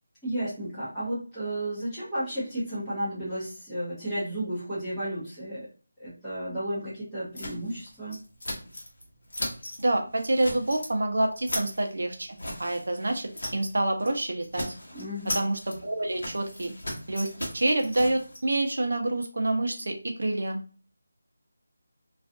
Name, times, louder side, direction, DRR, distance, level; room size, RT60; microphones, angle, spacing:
voice 1, 0.2-5.7 6.0-8.2 14.9-15.4, right 1 dB, ahead, -16 dB, 0.7 m, -33 dB
sound 1, 7.4-9.0 9.3-9.8 10.2-10.9 11.2-13.7 14.0-14.2 14.4-18.4, left 1 dB, 50° left, 0.9 m, -37 dB
voice 2, 9.8-14.7 15.3-16.7 17.1-20.6, right 2 dB, 55° right, 4 dB, 0.6 m, -27 dB
2.4 x 2.3 x 2.5 m, 0.37 s
figure-of-eight pair, 180°, 0 cm